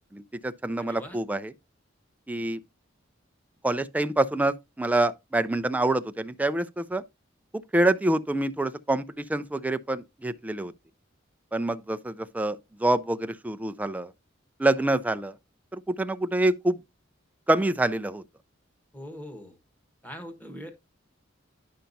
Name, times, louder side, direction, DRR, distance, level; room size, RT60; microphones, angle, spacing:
voice 1, 0.1-1.5 2.3-2.6 3.6-7.0 7.5-10.7 11.5-14.1 14.6-15.3 15.7-16.8 17.5-18.2, right 1 dB, 10° right, 0.3 m, -26 dB
voice 2, 0.8-1.2 18.9-19.6 20.0-20.7, equal, 10° left, 1.2 m, -42 dB
10.0 x 5.6 x 2.6 m
head